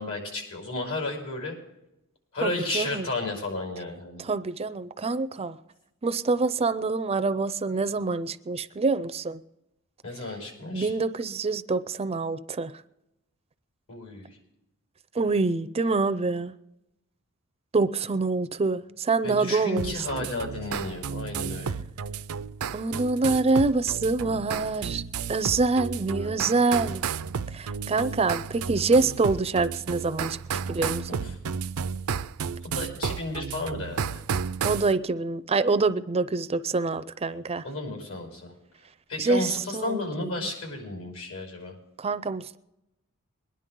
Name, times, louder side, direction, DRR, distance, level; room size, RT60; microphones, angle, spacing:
voice 1, 0.0-1.6 2.3-4.2 10.0-10.9 13.9-14.4 19.2-21.7 26.1-26.6 31.1-31.4 32.6-34.2 37.6-38.5 39.1-41.8, left 2 dB, 75° left, 5.6 m, -33 dB
voice 2, 2.4-3.1 4.2-5.6 6.0-9.4 10.7-12.8 15.1-16.5 17.7-19.9 22.7-25.0 25.3-27.0 27.5-31.2 34.6-37.6 39.2-40.5 42.0-42.6, right 3 dB, 30° right, 0.5 m, -26 dB
sound 1, 19.8-34.9, right 6 dB, 80° right, 0.5 m, -33 dB
22.5 x 10.5 x 3.7 m
head